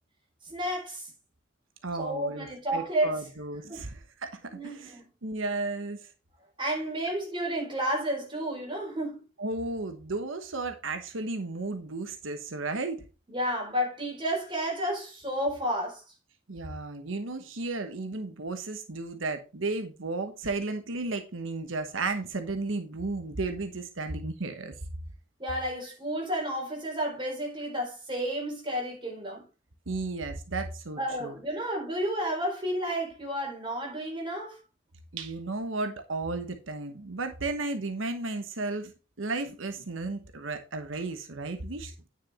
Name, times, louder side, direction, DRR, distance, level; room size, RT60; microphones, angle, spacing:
voice 1, 0.4-1.1 2.0-3.2 3.7-3.8 4.5-5.0 6.6-9.2 13.3-16.0 25.4-29.4 31.0-34.5, equal, 25° right, 4.3 m, -31 dB
voice 2, 1.8-2.5 2.7-6.0 9.4-13.0 16.5-24.7 29.9-31.3 35.1-38.9 39.2-42.1, right 3 dB, 90° right, 1.1 m, -34 dB
9.4 x 6.3 x 4.2 m
head